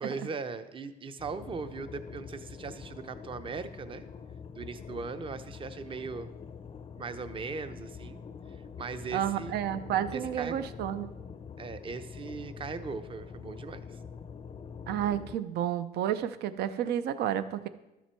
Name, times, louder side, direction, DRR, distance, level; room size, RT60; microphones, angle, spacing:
voice 1, 0.0-4.0 4.5-6.3 7.0-8.2 8.8-9.6 10.1-10.6 11.6-13.8, right 4 dB, 30° right, 11 dB, 0.7 m, -39 dB
sound 1, 1.2-15.4, left 6 dB, 30° left, 0.5 m, -45 dB
voice 2, 9.1-11.2 14.9-17.7, right 10 dB, 75° right, 13 dB, 0.6 m, -31 dB
12.5 x 7.2 x 4.5 m, 0.99 s
cardioid pair, 110°, 17 cm